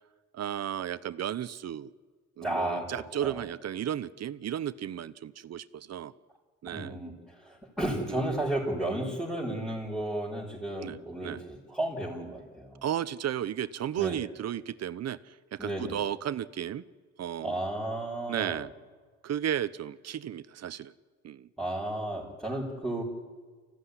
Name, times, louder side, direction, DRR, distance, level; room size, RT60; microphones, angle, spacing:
voice 1, 0.3-1.9 2.4-6.1 6.6-7.0 8.1-8.2 10.8-11.4 12.8-16.8 17.2-17.6 18.3-18.7 19.2-20.9 21.2-21.5, right 10 dB, 60° right, 14 dB, 1.0 m, -34 dB
voice 2, 2.4-2.9 3.2-3.4 6.7-12.8 14.0-14.2 15.6-15.9 17.4-18.6 21.6-23.0, right 1 dB, ahead, -5 dB, 5.4 m, -33 dB
27.0 x 16.0 x 9.9 m, 1.5 s
cardioid pair, 90°, 30 cm